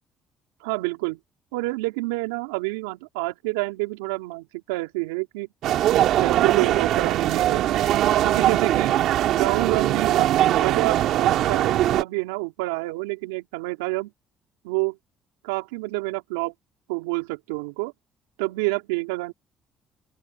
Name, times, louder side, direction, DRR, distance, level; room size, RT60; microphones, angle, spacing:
voice 1, 0.6-1.2 1.5-5.5 6.1-7.8 8.2-9.0 9.4-14.1 14.6-15.0 15.4-16.5 16.9-17.9 18.4-19.3, right 24 dB, 90° right, 4.3 m, -28 dB
sound 1, 5.6-12.0, right 12 dB, 70° right, 3.0 m, -21 dB
open air
hypercardioid pair, 60°, 0 cm